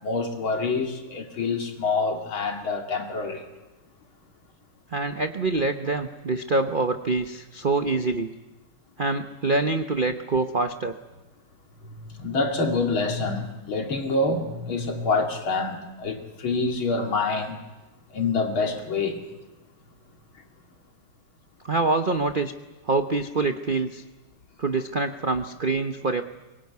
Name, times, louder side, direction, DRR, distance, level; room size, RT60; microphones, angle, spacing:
voice 1, 0.0-3.4 11.8-17.6 18.1-19.2, left 3 dB, 75° left, 3 dB, 3.2 m, -26 dB
voice 2, 4.9-8.3 9.0-10.9 21.6-22.5 22.8-24.0 24.6-26.2, right 3 dB, 55° right, 8 dB, 0.5 m, -25 dB
24.0 x 20.0 x 9.4 m, 1.1 s
omnidirectional pair, 2.3 m